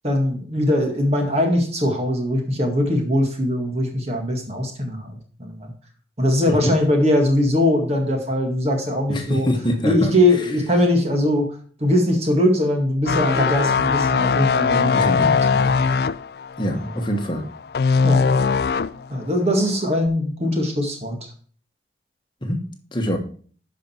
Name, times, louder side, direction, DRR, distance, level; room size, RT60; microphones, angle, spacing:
voice 1, 0.0-5.7 6.2-9.5 9.8-15.8 16.7-17.0 18.0-18.2 19.1-21.3, left 1 dB, 35° right, 3 dB, 1.9 m, -21 dB
voice 2, 9.1-10.1 14.9-15.4 16.6-17.4 22.4-22.6 22.9-23.2, equal, 25° left, 4 dB, 1.3 m, -24 dB
sound 1, 13.1-19.1 19.4-19.7, left 5 dB, 60° left, 0.4 m, -20 dB
11.5 x 5.3 x 4.4 m, 0.44 s
head